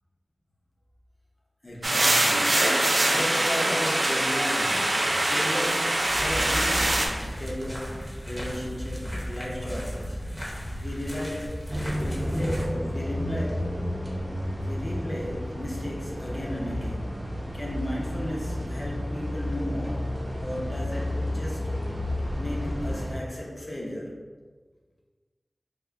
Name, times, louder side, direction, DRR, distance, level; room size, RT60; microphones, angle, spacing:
voice 1, 1.6-10.3 10.8-11.7 11.9-13.8 14.6-17.1 17.5-21.8 22.4-24.2, equal, 40° left, -3 dB, 0.8 m, -35 dB
sound 1, 1.8-7.1, right 1 dB, 60° right, 0.5 m, -23 dB
sound 2, 6.1-12.7, equal, 5° left, 0.9 m, -35 dB
sound 3, 11.7-23.1, left 1 dB, 35° right, 0.9 m, -31 dB
3.6 x 2.1 x 3.5 m, 1.5 s
wide cardioid pair, 55°, 0 cm